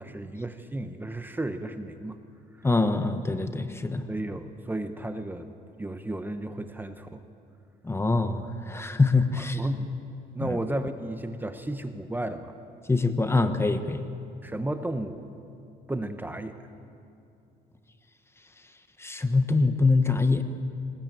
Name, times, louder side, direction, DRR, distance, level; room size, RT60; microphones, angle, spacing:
voice 1, 0.0-2.2 2.6-2.7 4.1-5.5 5.8-7.2 9.4-10.0 10.3-12.5 14.4-15.2 15.9-16.6, right 1 dB, 10° right, 8 dB, 1.1 m, -33 dB
voice 2, 2.6-4.1 7.8-9.6 10.4-10.6 12.9-14.1 19.0-20.4, left 3 dB, 15° left, 9 dB, 1.1 m, -24 dB
20.5 x 20.0 x 9.0 m, 2.6 s
cardioid pair, 110°, 17 cm